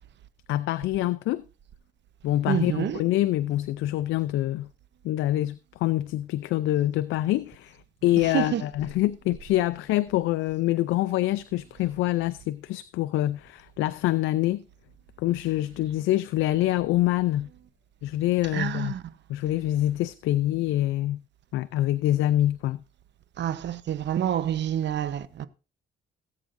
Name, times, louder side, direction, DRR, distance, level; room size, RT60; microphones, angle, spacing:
voice 1, 0.5-1.4 2.2-4.7 5.0-14.6 15.2-17.5 18.0-18.9 19.3-21.2 21.5-22.8, left 15 dB, 90° left, 0.5 m, -25 dB
voice 2, 2.5-3.0 8.2-8.6 18.5-19.0 23.4-25.5, right 10 dB, 65° right, 0.9 m, -28 dB
18.5 x 8.3 x 2.6 m
cardioid pair, 90°, 20 cm